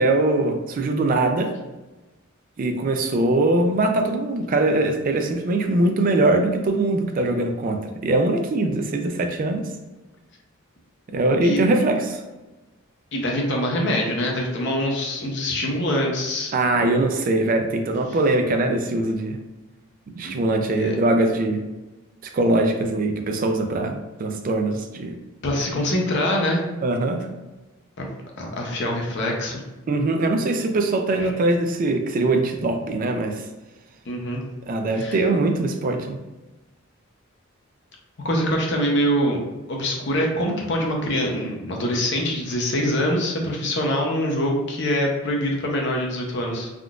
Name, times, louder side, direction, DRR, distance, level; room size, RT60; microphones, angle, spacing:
voice 1, 0.0-1.5 2.6-9.7 11.1-12.2 16.5-19.4 20.1-21.6 22.2-25.2 26.8-27.3 29.9-33.4 34.7-36.2, right 2 dB, 40° right, 5 dB, 0.3 m, -22 dB
voice 2, 13.1-16.5 16.8-17.1 20.2-20.4 20.8-20.9 25.4-26.6 28.0-28.1 28.4-29.6 31.2-31.3 34.1-34.4 35.0-35.2 38.2-39.4 39.7-46.7, equal, 55° left, 0 dB, 0.6 m, -24 dB
3.5 x 2.4 x 2.3 m, 1.1 s
head